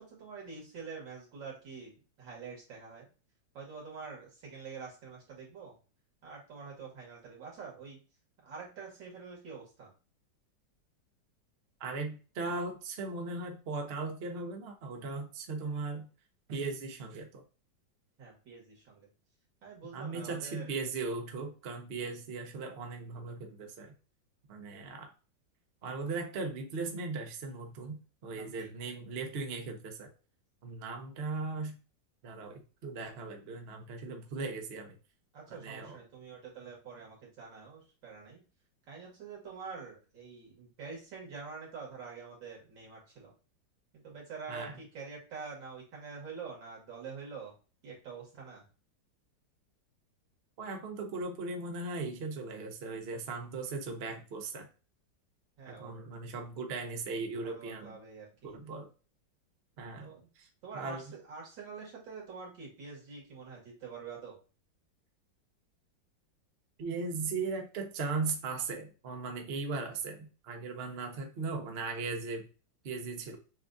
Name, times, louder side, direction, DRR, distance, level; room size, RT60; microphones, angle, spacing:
voice 1, 0.0-1.9 2.2-3.1 3.5-5.8 6.2-8.0 8.4-9.9 18.2-19.1 19.6-20.7 28.3-28.7 35.3-38.4 38.9-43.3 43.9-47.5 47.8-48.6 55.6-56.1 57.4-58.5 60.0-60.3 60.6-64.4, right 5 dB, 85° right, -3 dB, 2.6 m, -46 dB
voice 2, 11.8-16.1 16.5-17.4 19.9-23.9 24.5-25.1 25.8-30.1 30.6-31.8 32.2-34.9 35.5-36.0 44.5-44.7 50.6-54.7 55.7-58.0 58.5-58.9 59.8-60.1 60.4-60.5 60.7-61.0 66.8-72.4 72.8-73.4, right 3 dB, 50° right, 3 dB, 0.8 m, -38 dB
7.1 x 2.4 x 2.6 m, 0.34 s
omnidirectional pair, 2.0 m